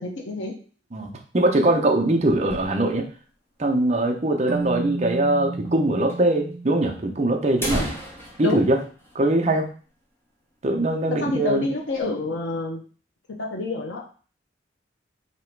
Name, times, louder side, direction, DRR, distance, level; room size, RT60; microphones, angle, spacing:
voice 1, 0.0-0.5 7.7-7.9 8.4-8.6 11.1-12.8 13.4-14.1, left 2 dB, 85° left, 0 dB, 0.7 m, -28 dB
voice 2, 0.9-3.1 3.6-7.9 8.4-8.8 9.1-9.7 10.6-11.7, right 1 dB, 35° right, 2 dB, 0.6 m, -22 dB
sound 1, 1.4-3.2 3.6-3.7 3.9-4.0 4.6-4.7 5.6-5.8 6.1-6.2 6.9-7.0 7.4-10.0 10.3-10.4 10.8-11.1 11.5-12.1, equal, 10° left, 0.8 m, -35 dB
Keyboard (musical), 4.5-7.7, right 3 dB, 75° right, 0.8 m, -33 dB
3.0 x 2.9 x 4.4 m, 0.40 s
head